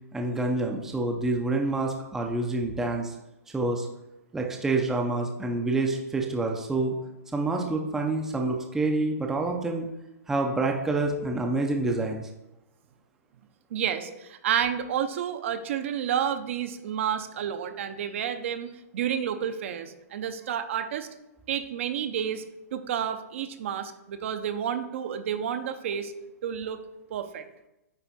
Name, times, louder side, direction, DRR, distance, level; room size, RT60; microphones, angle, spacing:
voice 1, 0.1-3.1 3.5-3.9 4.3-6.9 7.3-9.9 10.3-12.3, right 2 dB, 5° right, 1 dB, 0.5 m, -27 dB
voice 2, 13.7-21.1 21.5-22.4 22.7-26.1 26.4-26.8 27.1-27.4, right 9 dB, 50° right, 9 dB, 0.6 m, -30 dB
9.0 x 3.4 x 4.1 m, 0.93 s
hypercardioid pair, 160°, 9 cm